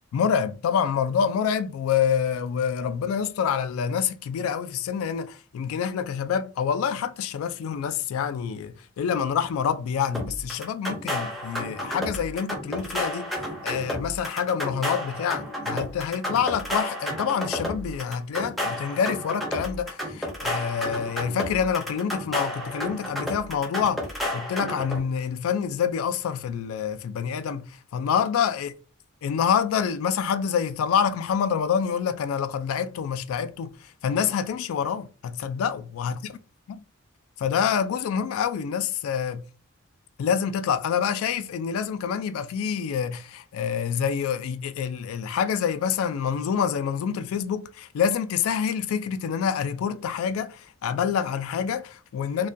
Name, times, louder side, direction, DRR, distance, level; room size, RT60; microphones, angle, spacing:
voice 1, 0.1-13.3 13.6-24.0 24.3-28.7 29.2-33.7 34.0-36.1 37.4-39.4 40.2-52.5, left 7 dB, 80° left, 0.3 m, -27 dB
sound 1, 10.1-25.0, left 1 dB, ahead, 0.4 m, -31 dB
2.3 x 2.1 x 2.6 m
head